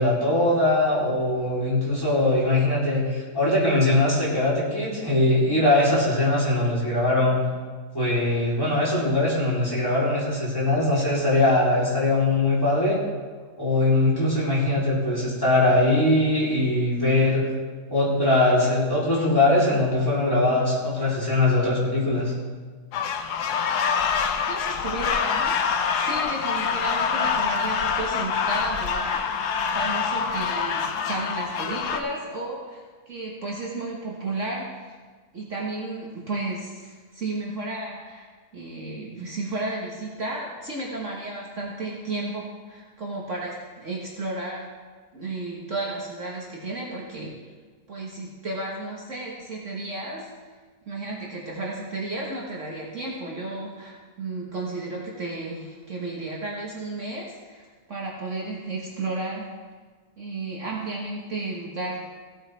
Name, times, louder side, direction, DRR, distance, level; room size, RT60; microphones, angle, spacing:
voice 1, 0.0-7.4 7.9-13.0 13.6-17.4 17.9-22.3, left 2 dB, 15° left, -7 dB, 3.6 m, -21 dB
sound 1, 22.9-32.0, left 6 dB, 80° left, 1.3 m, -25 dB
voice 2, 24.5-29.5 29.7-35.0 35.3-38.3 38.5-44.7 45.1-47.4 47.9-50.3 50.9-59.5 60.2-62.0, right 2 dB, 50° right, -4 dB, 1.7 m, -33 dB
16.5 x 8.8 x 3.4 m, 1.5 s
omnidirectional pair, 1.7 m